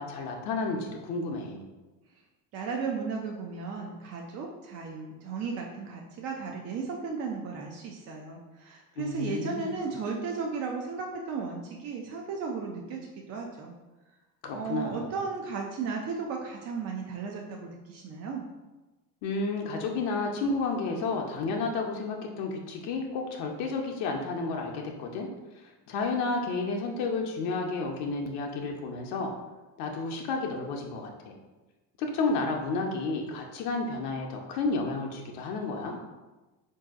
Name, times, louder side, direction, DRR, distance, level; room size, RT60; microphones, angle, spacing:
voice 1, 0.0-1.7 9.0-9.7 14.4-15.0 19.2-25.3 25.5-29.3 29.8-31.4 32.0-36.0, left 3 dB, 60° left, 1 dB, 0.6 m, -31 dB
voice 2, 2.5-13.7 14.5-18.5, right 5 dB, 35° right, 0 dB, 0.4 m, -35 dB
3.7 x 2.6 x 2.4 m, 1.1 s
hypercardioid pair, 80°, 46 cm